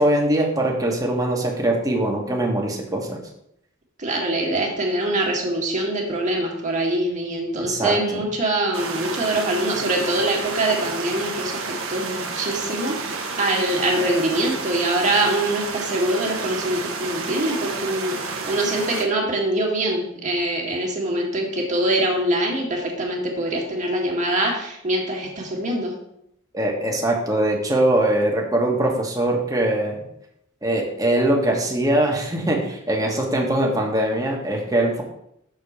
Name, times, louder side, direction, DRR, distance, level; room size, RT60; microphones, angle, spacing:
voice 1, 0.0-3.2 7.5-8.2 26.5-30.0 30.6-35.0, right 1 dB, 15° right, 0 dB, 1.4 m, -22 dB
voice 2, 4.0-25.9, right 1 dB, 35° right, -1 dB, 1.9 m, -24 dB
sound 1, 8.7-19.0, right 4 dB, 85° right, 1.2 m, -30 dB
6.5 x 4.3 x 6.6 m, 0.76 s
head